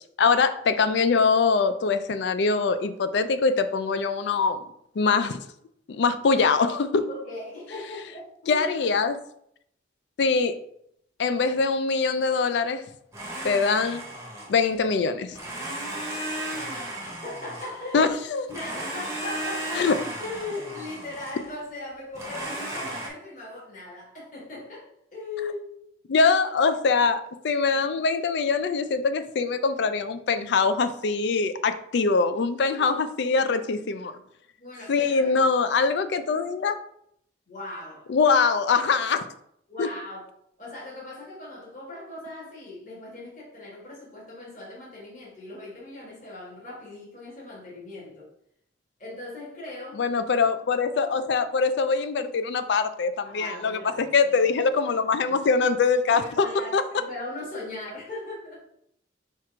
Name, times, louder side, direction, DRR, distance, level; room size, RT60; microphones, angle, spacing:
voice 1, 0.2-4.7 5.0-5.4 5.9-7.1 8.5-9.2 10.2-10.6 11.2-12.8 13.4-14.0 14.5-15.4 17.9-18.4 19.8-20.0 26.1-34.2 34.9-36.8 38.1-39.3 39.8-39.9 50.0-56.5 56.7-56.8, left 4 dB, 65° left, 0.4 m, -23 dB
voice 2, 7.1-8.7 15.8-16.3 17.0-18.1 18.5-25.7 31.7-31.8 32.6-33.1 34.6-35.4 37.5-38.1 39.7-40.2 40.6-48.3 49.0-50.0 53.2-54.6 56.1-58.6, left 2 dB, 40° left, 1.5 m, -39 dB
Domestic sounds home sounds, 13.1-14.8 15.3-18.1 18.5-21.5 22.1-23.1, right 1 dB, 15° right, 0.7 m, -35 dB
4.5 x 2.5 x 4.5 m
head